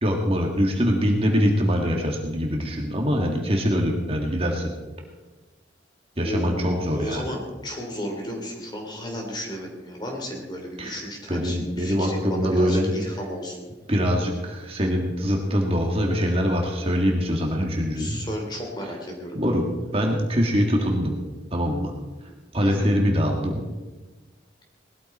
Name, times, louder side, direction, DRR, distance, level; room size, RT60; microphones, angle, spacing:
voice 1, 0.0-4.7 6.2-7.4 10.8-11.0 11.3-12.9 13.9-18.2 19.4-19.7 19.9-21.1 21.5-21.9 22.5-23.6, equal, 30° right, 1 dB, 1.9 m, -23 dB
voice 2, 6.2-13.7 17.9-19.6 22.6-22.9, equal, 25° left, 1 dB, 3.1 m, -34 dB
19.5 x 13.5 x 4.3 m, 1.2 s
head